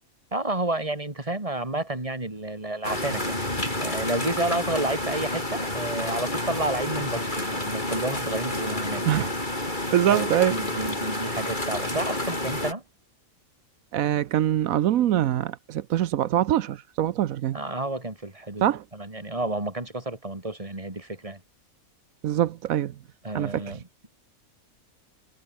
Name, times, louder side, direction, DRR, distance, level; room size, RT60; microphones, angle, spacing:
voice 1, 0.3-9.1 10.1-12.8 17.5-21.4 23.2-24.1, right 2 dB, 25° right, 3.3 m, -31 dB
sound 1, 2.8-12.7, left 1 dB, 30° left, 5.7 m, -29 dB
voice 2, 9.9-10.6 13.9-17.6 18.6-18.8 22.2-22.9 23.3-23.6, right 12 dB, 75° right, 1.1 m, -23 dB
omnidirectional pair, 1.5 m